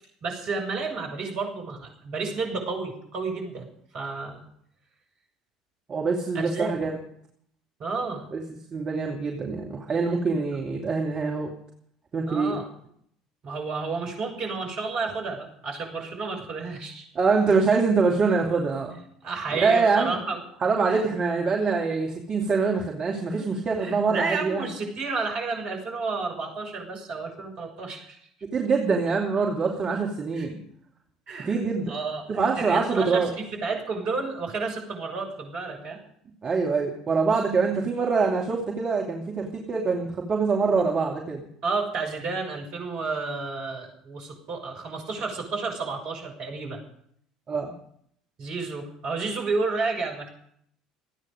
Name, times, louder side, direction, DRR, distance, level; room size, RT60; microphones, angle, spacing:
voice 1, 0.2-3.7 3.9-4.4 6.3-6.7 7.8-8.2 12.3-12.7 13.4-17.0 19.2-20.4 20.9-21.0 23.3-23.5 23.8-28.2 30.3-30.5 31.3-36.0 41.6-46.8 48.4-50.3, right 4 dB, 50° right, 1 dB, 6.4 m, -31 dB
voice 2, 5.9-7.0 8.3-8.4 8.7-11.5 12.1-12.6 17.1-19.0 19.5-20.2 20.6-24.7 28.5-30.6 31.4-31.9 32.3-33.3 36.4-41.4 47.5-47.7, right 4 dB, 30° right, -1 dB, 2.7 m, -24 dB
27.5 x 9.7 x 5.2 m, 0.67 s
figure-of-eight pair, 60°, 3 cm